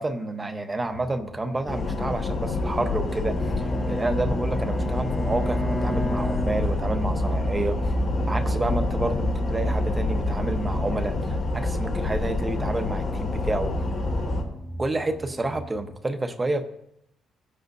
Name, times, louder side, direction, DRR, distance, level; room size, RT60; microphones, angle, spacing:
voice 1, 0.0-7.8 8.3-13.7 14.8-16.6, right 2 dB, 20° right, 7 dB, 0.9 m, -29 dB
sound 1, 0.9-16.0, right 2 dB, 5° right, 1.3 m, -41 dB
sound 2, 1.7-14.4, left 2 dB, 55° left, 2.1 m, -27 dB
Bowed string instrument, 2.9-7.3, equal, 30° left, 0.9 m, -33 dB
16.5 x 8.0 x 2.6 m, 0.79 s
cardioid pair, 90°, 0 cm